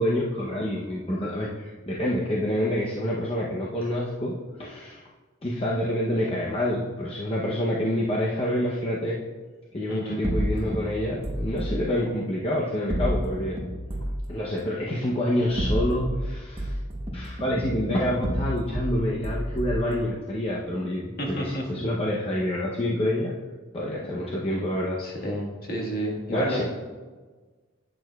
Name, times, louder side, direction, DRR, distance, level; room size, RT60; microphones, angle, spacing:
voice 1, 0.0-5.0 5.4-9.2 9.7-13.6 14.3-16.8 17.1-23.3 23.7-25.0 26.3-26.6, left 1 dB, 30° left, -4 dB, 0.7 m, -27 dB
voice 2, 9.9-10.2 21.2-21.6 25.0-26.6, right 1 dB, 50° left, -1 dB, 1.6 m, -30 dB
sound 1, 10.2-11.7 12.9-14.2 15.4-16.2 16.6-18.9 19.2-19.9, equal, 30° right, 1.0 m, -29 dB
10.5 x 8.6 x 2.3 m, 1.4 s
head